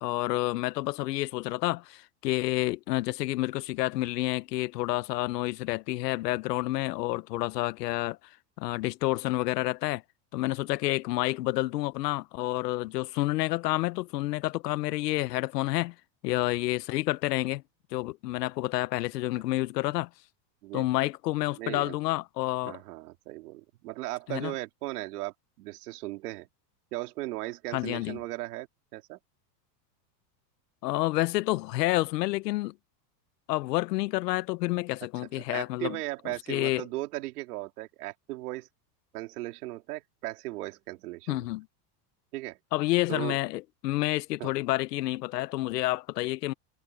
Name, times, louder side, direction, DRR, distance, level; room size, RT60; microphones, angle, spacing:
voice 1, 0.0-8.2 8.6-10.0 10.3-15.9 16.2-17.6 17.9-20.1 20.7-22.8 24.3-24.5 27.7-28.2 30.8-32.7 33.5-36.0 36.2-36.9 41.3-41.7 42.7-46.5, left 18 dB, 80° left, 1.0 m, -29 dB
voice 2, 21.6-22.0 22.6-26.5 26.9-28.7 28.9-29.2 35.5-38.7 39.1-41.5 42.3-42.6 43.1-43.4 44.4-44.5, right 18 dB, 65° right, 3.5 m, -37 dB
supercardioid pair, 180°, 48 cm